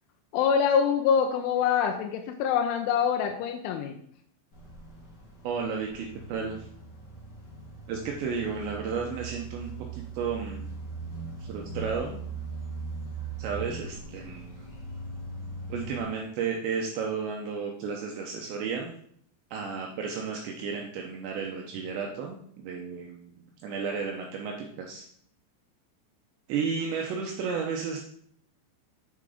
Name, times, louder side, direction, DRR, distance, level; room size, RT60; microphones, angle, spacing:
voice 1, 0.3-4.0, left 7 dB, 80° left, 3 dB, 2.9 m, -25 dB
sound 1, 4.5-16.0, right 3 dB, 65° left, 1.0 m, -40 dB
voice 2, 5.4-6.7 7.9-10.7 11.4-12.2 13.4-14.7 15.7-18.9 19.5-25.1 26.5-28.0, right 5 dB, 80° right, 1 dB, 2.6 m, -33 dB
7.6 x 5.9 x 4.9 m, 0.65 s
omnidirectional pair, 6.0 m